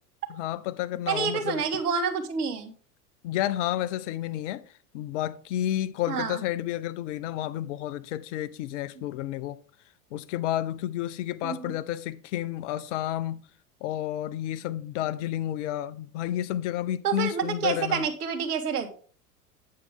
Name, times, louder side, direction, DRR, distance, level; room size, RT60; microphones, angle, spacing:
voice 1, 0.3-1.6 3.2-4.6 4.9-9.6 10.1-13.4 13.8-18.1, left 13 dB, 50° left, 0.7 m, -31 dB
voice 2, 1.1-2.7 6.1-6.4 11.4-11.7 17.0-18.9, right 6 dB, 70° right, 1.7 m, -28 dB
8.6 x 7.4 x 3.6 m
figure-of-eight pair, 90°, 48 cm